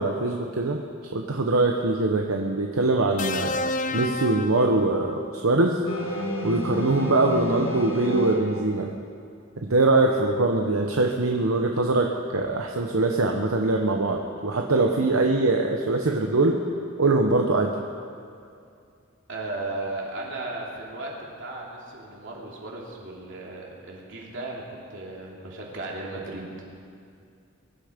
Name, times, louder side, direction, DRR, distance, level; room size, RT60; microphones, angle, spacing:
voice 1, 0.0-3.6 3.9-5.8 6.4-8.9 9.6-16.6 17.0-17.7, right 2 dB, 75° right, 2 dB, 1.0 m, -23 dB
sound 1, 3.2-5.4 6.8-7.0, left 2 dB, 35° left, 0.5 m, -31 dB
sound 2, 5.9-8.9, left 1 dB, 70° left, 1.8 m, -30 dB
voice 2, 19.3-21.1 21.4-24.6 24.9-26.6, right 2 dB, 60° right, -3 dB, 3.1 m, -35 dB
22.0 x 11.5 x 5.2 m, 2.4 s
head